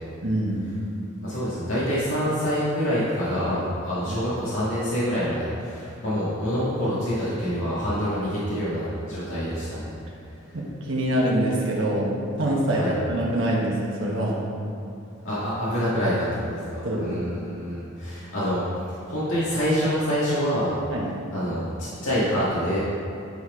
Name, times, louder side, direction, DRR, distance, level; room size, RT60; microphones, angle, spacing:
voice 1, 0.2-0.8 4.1-4.2 10.5-12.1 12.4-14.4 16.8-17.1 20.9-21.1, right 1 dB, 70° right, -4 dB, 1.2 m, -25 dB
voice 2, 1.2-9.9 12.7-12.9 15.2-18.6 19.0-20.7 21.3-22.8, equal, 75° left, -10 dB, 1.8 m, -26 dB
10.0 x 4.2 x 4.9 m, 2.7 s
head